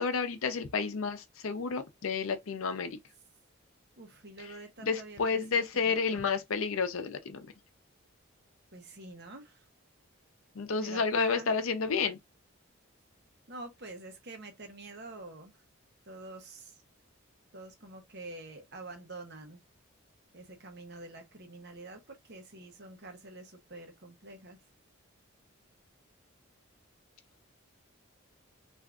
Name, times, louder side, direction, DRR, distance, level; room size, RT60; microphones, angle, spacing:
voice 1, 0.0-3.0 4.4-4.5 4.8-7.5 10.5-12.2, left 5 dB, 80° left, 0.6 m, -31 dB
voice 2, 4.0-6.2 8.7-9.6 10.8-11.5 13.5-15.6 16.1-16.7 17.5-19.6 20.3-24.6, right 2 dB, 50° right, 0.8 m, -47 dB
3.5 x 2.5 x 2.3 m
head